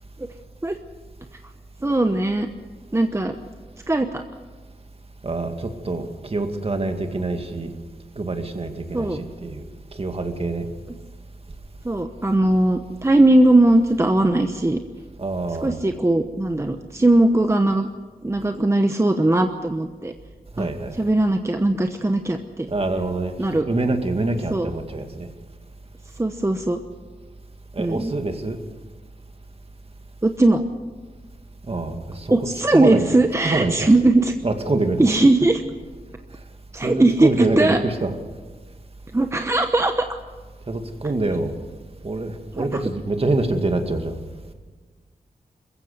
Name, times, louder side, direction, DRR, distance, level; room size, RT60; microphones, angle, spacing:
voice 1, 1.8-2.5 2.9-3.4 3.9-4.2 8.9-9.2 11.8-14.8 15.6-17.9 18.2-20.1 20.6-20.7 21.0-22.7 23.4-23.7 24.5-24.7 26.2-26.8 27.8-28.1 30.2-30.6 32.3-34.3 35.0-35.6 36.7-37.8 39.1-40.1 42.5-42.8, right 2 dB, 20° right, 1.0 m, -19 dB
voice 2, 5.2-7.7 8.2-9.7 10.0-10.7 15.2-15.8 20.6-21.0 22.7-25.3 27.7-28.6 31.7-33.9 34.4-35.2 36.8-38.2 40.7-41.5 42.0-44.2, right 2 dB, 40° right, 2.2 m, -25 dB
21.0 x 15.5 x 8.0 m
cardioid pair, 70°, 15 cm